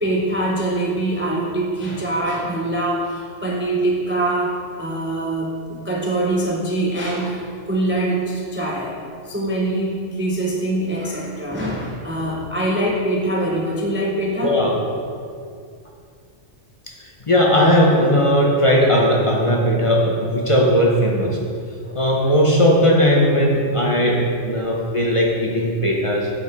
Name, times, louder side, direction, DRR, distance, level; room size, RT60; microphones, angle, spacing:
voice 1, 0.0-8.9 9.3-14.6 21.8-22.3, right 1 dB, 15° right, -2 dB, 0.5 m, -23 dB
voice 2, 14.4-14.8 17.2-21.4 21.9-26.3, equal, 30° left, -2 dB, 0.8 m, -17 dB
7.8 x 5.6 x 4.1 m, 2.3 s
omnidirectional pair, 1.3 m